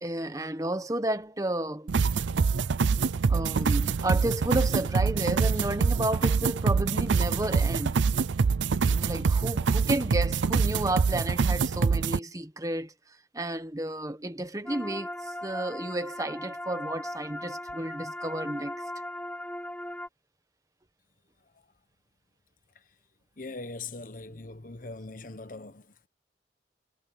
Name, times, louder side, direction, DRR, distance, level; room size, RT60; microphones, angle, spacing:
voice 1, 0.0-1.9 3.3-8.0 8.9-12.9 13.3-18.8, right 1 dB, 20° right, 1.2 m, -32 dB
sound 1, 1.9-12.2, right 5 dB, 85° right, 0.5 m, -25 dB
sound 2, 14.6-20.1, left 1 dB, 10° left, 2.2 m, -38 dB
voice 2, 23.4-26.1, left 3 dB, 45° left, 1.2 m, -41 dB
head